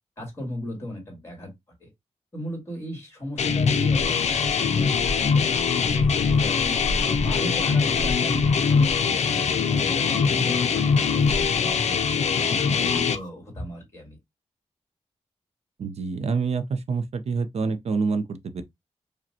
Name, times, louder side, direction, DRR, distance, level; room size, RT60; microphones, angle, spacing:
voice 1, 0.2-1.5 1.8-1.9 2.3-6.8 7.2-12.0 12.4-14.2, equal, 25° left, 2.0 m, -36 dB
sound 1, 3.4-13.2, left 6 dB, 70° left, 0.4 m, -22 dB
sound 2, 3.9-13.3, left 1 dB, 40° left, 1.9 m, -35 dB
voice 2, 15.8-18.6, right 4 dB, 65° right, 0.6 m, -27 dB
5.0 x 2.2 x 2.7 m
wide cardioid pair, 165°, 12 cm